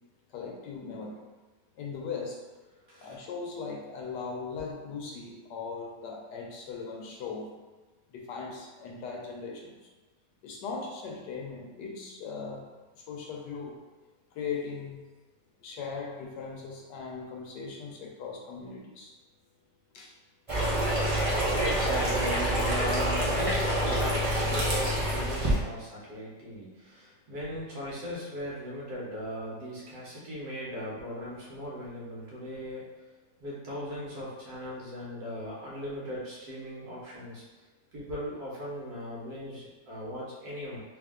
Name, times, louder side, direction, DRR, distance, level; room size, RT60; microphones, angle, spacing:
voice 1, 0.3-1.2 1.8-2.4 3.0-7.5 8.1-9.8 10.4-12.6 13.1-13.8 14.3-15.0 15.6-19.1 19.9-20.1 20.5-21.0, left 5 dB, 80° left, -1 dB, 1.3 m, -39 dB
voice 2, 2.9-3.2 4.6-4.7 21.2-32.9 33.4-37.4 37.9-40.8, equal, 65° right, -6 dB, 1.6 m, -38 dB
sound 1, 20.5-25.6, equal, 40° right, 0.4 m, -27 dB
3.6 x 2.7 x 3.6 m, 1.3 s
omnidirectional pair, 1.8 m